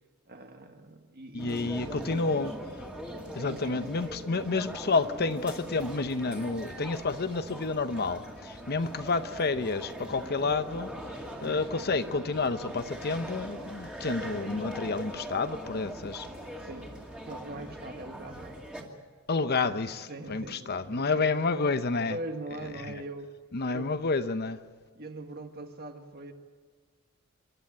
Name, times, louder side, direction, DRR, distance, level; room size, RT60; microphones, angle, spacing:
voice 1, 0.3-2.5 3.3-3.9 16.6-16.9 17.2-18.5 18.8-19.1 19.6-19.8 20.1-21.3 22.1-23.3 23.7-23.9 25.0-26.3, right 2 dB, 45° right, 1.7 m, -42 dB
voice 2, 1.3-2.5 3.3-10.9 11.4-16.3 19.3-22.2 23.5-24.6, left 3 dB, 45° left, 0.8 m, -29 dB
sound 1, 1.4-18.8, equal, 5° right, 2.4 m, -41 dB
26.5 x 12.5 x 8.7 m
head